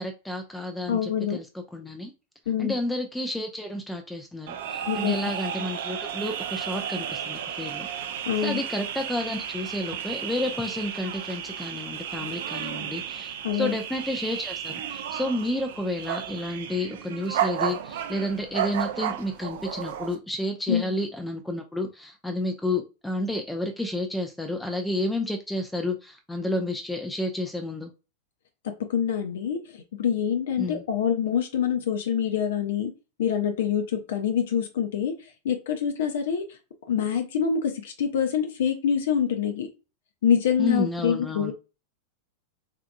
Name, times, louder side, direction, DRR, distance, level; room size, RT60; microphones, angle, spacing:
voice 1, 0.0-2.1 2.6-7.9 8.4-27.9 30.6-30.8 40.6-41.5, left 1 dB, 5° left, 0.5 m, -31 dB
voice 2, 0.9-1.4 2.5-2.8 4.9-5.2 8.3-8.6 13.4-13.8 20.7-20.9 28.6-32.9 33.2-35.1 35.4-36.4 36.9-39.7 40.2-41.5, left 8 dB, 60° left, 0.6 m, -25 dB
sound 1, 4.5-20.2, right 9 dB, 55° right, 0.4 m, -33 dB
3.7 x 3.5 x 2.2 m
figure-of-eight pair, 90°, 0 cm